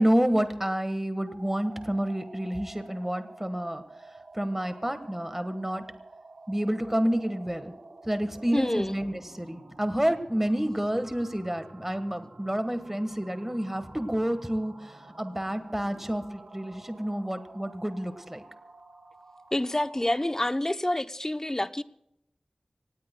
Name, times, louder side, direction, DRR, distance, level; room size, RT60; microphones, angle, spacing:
voice 1, 0.0-3.8 4.3-5.8 6.5-7.7 8.0-18.4, equal, 15° right, 1.4 m, -29 dB
sound 1, 1.3-20.6, right 2 dB, 80° right, 3.3 m, -50 dB
voice 2, 8.5-9.0 19.5-21.8, left 1 dB, 25° left, 0.7 m, -27 dB
26.0 x 18.5 x 2.2 m
wide cardioid pair, 55°, 2 cm